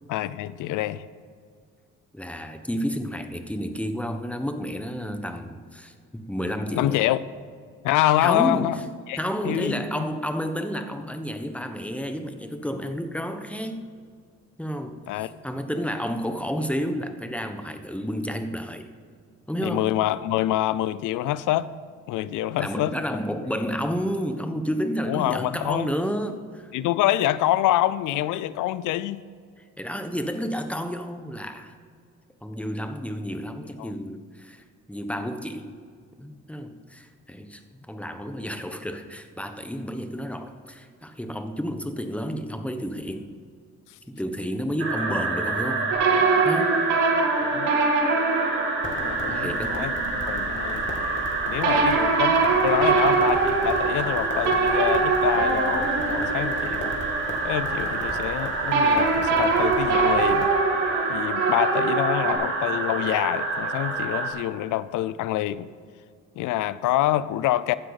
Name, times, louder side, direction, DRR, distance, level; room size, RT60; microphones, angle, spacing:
voice 1, 0.1-1.1 6.7-7.2 7.8-8.8 9.1-9.2 9.4-9.8 15.1-15.3 19.6-21.7 22.1-22.9 25.1-25.9 26.7-29.3 33.8-33.9 47.4-47.7 49.0-49.9 50.2-50.9 51.4-57.0 57.4-60.5 61.1-65.7 66.4-67.8, left 14 dB, 90° left, 17 dB, 0.6 m, -26 dB
voice 2, 2.1-7.0 8.2-8.7 9.2-13.8 14.6-18.9 19.5-19.9 22.6-26.7 29.8-31.7 32.4-34.6 34.9-35.7 36.2-43.3 44.1-45.9 46.4-46.8 49.3-49.8, equal, 5° left, 7 dB, 1.2 m, -31 dB
sound 1, 44.8-64.3, right 3 dB, 45° right, 3.7 m, -28 dB
sound 2, 45.9-49.3 51.6-57.4 58.7-62.3, right 4 dB, 90° right, 2.0 m, -23 dB
Crackle, 48.8-60.5, left 1 dB, 40° left, 2.7 m, -38 dB
15.0 x 10.0 x 4.1 m, 2.1 s
cardioid pair, 90°, 30 cm